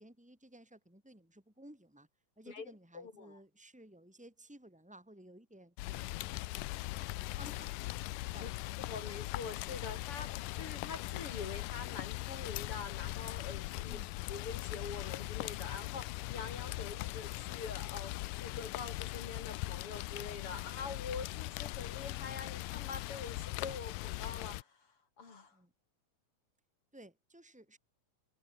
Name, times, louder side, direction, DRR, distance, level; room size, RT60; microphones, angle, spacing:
voice 1, 0.0-2.1 2.4-8.9 13.9-14.1 25.5-25.7 26.9-27.8, right 1 dB, ahead, 7.7 m, -57 dB
voice 2, 2.5-3.4 8.4-8.5 8.8-14.0 14.3-25.6, left 5 dB, 40° left, 4.9 m, -45 dB
Rain, 5.8-24.6, left 20 dB, 80° left, 2.0 m, -40 dB
omnidirectional pair, 4.2 m